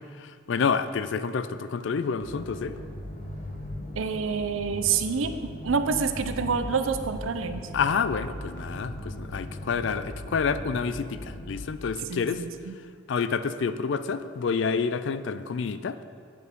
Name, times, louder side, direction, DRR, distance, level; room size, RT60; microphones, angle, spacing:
voice 1, 0.2-2.7 7.7-12.4 13.1-16.0, left 5 dB, 60° left, 13 dB, 0.4 m, -28 dB
sound 1, 2.2-11.7, left 1 dB, 35° left, 1.0 m, -38 dB
voice 2, 4.0-5.3 5.6-7.6 12.1-12.7, right 5 dB, 75° right, 9 dB, 0.6 m, -27 dB
9.4 x 6.3 x 5.3 m, 2.2 s
head